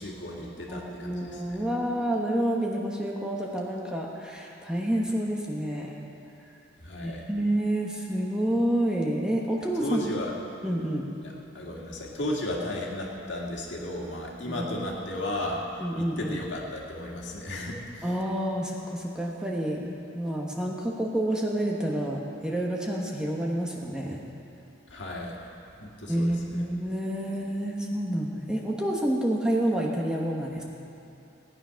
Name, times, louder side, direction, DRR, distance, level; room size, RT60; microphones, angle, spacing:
voice 1, 0.0-1.6 6.8-7.2 9.8-10.3 11.2-15.6 16.0-18.1 24.9-26.6, left 1 dB, 65° left, -2 dB, 2.0 m, -35 dB
voice 2, 0.7-5.9 7.0-10.1 10.6-11.1 14.5-14.6 15.8-16.4 18.0-24.2 26.1-30.6, right 1 dB, 5° right, -2 dB, 1.2 m, -29 dB
17.5 x 9.8 x 5.8 m, 2.8 s
head